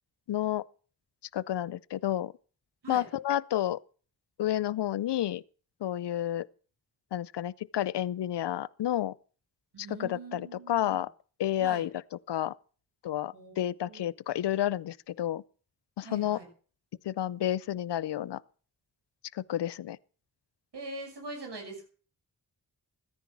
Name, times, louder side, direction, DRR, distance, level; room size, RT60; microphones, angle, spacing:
voice 1, 0.3-0.6 1.3-2.3 2.9-3.8 4.4-5.4 5.8-6.5 7.1-9.1 10.0-11.1 11.4-11.9 12.3-12.5 13.0-15.4 16.0-16.4 17.1-18.4 19.3-20.0, left 12 dB, 90° left, 0.6 m, -30 dB
voice 2, 9.7-11.0 11.6-11.8 13.3-13.6 13.8-14.1 16.0-16.4 20.7-21.9, right 2 dB, 85° right, 6.4 m, -43 dB
14.5 x 10.0 x 7.2 m
cardioid pair, 45°, 40 cm